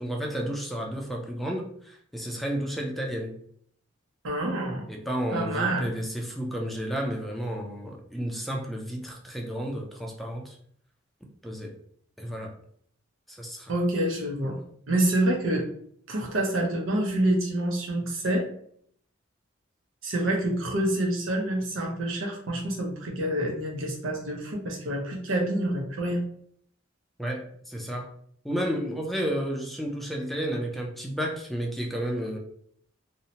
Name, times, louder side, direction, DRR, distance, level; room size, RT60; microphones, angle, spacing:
voice 1, 0.0-3.3 4.9-10.6 11.4-11.8 12.2-12.5 13.3-13.7 14.4-14.5 27.2-28.1 28.4-32.4, equal, ahead, 0 dB, 0.3 m, -32 dB
voice 2, 4.2-4.9 5.3-5.9 13.7-14.6 14.9-15.7 16.1-18.4 20.0-26.3, right 1 dB, 90° right, 2 dB, 0.7 m, -27 dB
2.7 x 2.1 x 2.7 m, 0.64 s
head